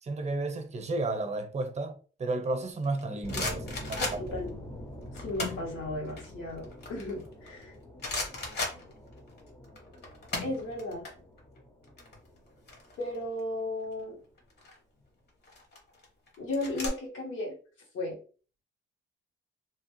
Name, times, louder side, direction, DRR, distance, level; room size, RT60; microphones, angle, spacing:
voice 1, 0.0-4.2, right 2 dB, 35° right, 0.7 m, -33 dB
sound 1, 2.8-4.5 5.1-5.7 6.1-7.6 8.0-9.4 9.6-11.1 11.4-11.6 11.8-13.4 14.4-14.8 15.4-16.9, left 3 dB, 55° left, 1.2 m, -36 dB
sound 2, 3.2-14.0, left 1 dB, 15° left, 0.6 m, -45 dB
voice 2, 4.0-4.8 5.1-7.7 10.4-11.0 13.0-14.2 16.4-17.5 17.9-18.2, left 2 dB, 85° left, 1.4 m, -35 dB
2.8 x 2.3 x 3.0 m
cardioid pair, 90°, 20 cm